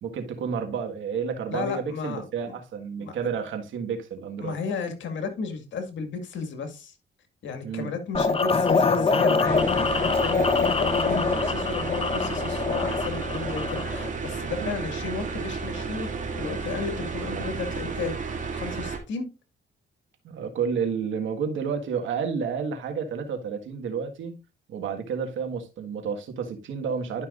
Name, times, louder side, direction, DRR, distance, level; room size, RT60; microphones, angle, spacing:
voice 1, 0.0-4.6 7.6-7.9 14.5-14.8 17.2-17.6 20.2-24.3 24.7-27.3, right 6 dB, 75° right, 1.7 m, -31 dB
voice 2, 1.5-2.6 3.0-3.2 4.4-6.9 7.4-16.1 16.4-19.3, left 5 dB, 70° left, 2.1 m, -34 dB
sound 1, 8.1-14.1, left 4 dB, 30° left, 0.8 m, -24 dB
sound 2, 9.4-19.0, right 4 dB, 40° right, 2.4 m, -32 dB
11.5 x 5.7 x 2.5 m
cardioid pair, 90°, 20 cm